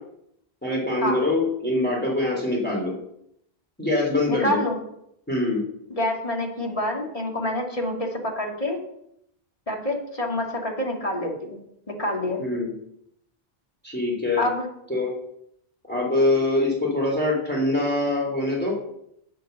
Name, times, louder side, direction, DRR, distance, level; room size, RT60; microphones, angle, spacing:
voice 1, 0.6-2.9 3.8-4.6 5.3-5.6 12.4-12.7 13.8-14.4 14.9-15.1 15.9-18.7, left 2 dB, 10° left, -2 dB, 3.3 m, -24 dB
voice 2, 4.3-4.8 5.9-8.8 9.7-12.4 14.4-14.7, left 1 dB, 35° left, 0 dB, 2.6 m, -27 dB
9.2 x 8.0 x 6.9 m, 0.75 s
omnidirectional pair, 1.1 m